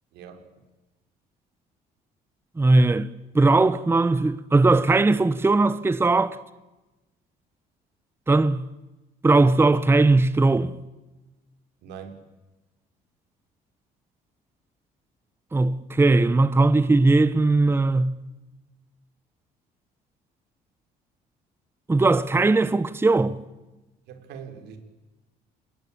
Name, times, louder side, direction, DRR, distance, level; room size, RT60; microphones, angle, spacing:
voice 1, 0.1-0.4 11.8-12.2 24.1-24.8, right 7 dB, 85° right, 4.5 m, -41 dB
voice 2, 2.6-6.4 8.3-8.6 9.2-10.7 15.5-18.2 21.9-23.4, right 3 dB, 15° right, 0.9 m, -19 dB
28.5 x 21.5 x 8.8 m
cardioid pair, 110°, 17 cm